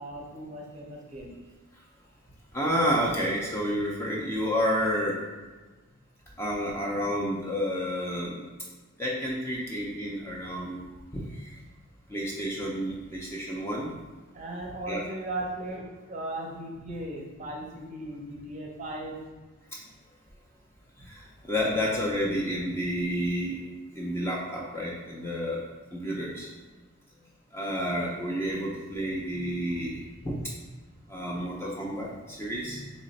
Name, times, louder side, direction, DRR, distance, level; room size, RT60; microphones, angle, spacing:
voice 1, 0.0-1.3 14.3-19.2, right 1 dB, 30° right, -1 dB, 0.6 m, -37 dB
voice 2, 2.5-5.2 6.4-8.4 9.0-10.8 11.1-11.5 12.1-13.9 14.9-15.0 21.0-23.6 23.9-25.6 25.9-26.5 27.5-30.4 31.1-32.9, equal, 10° left, -4 dB, 0.4 m, -30 dB
3.2 x 3.0 x 4.1 m, 1.3 s
head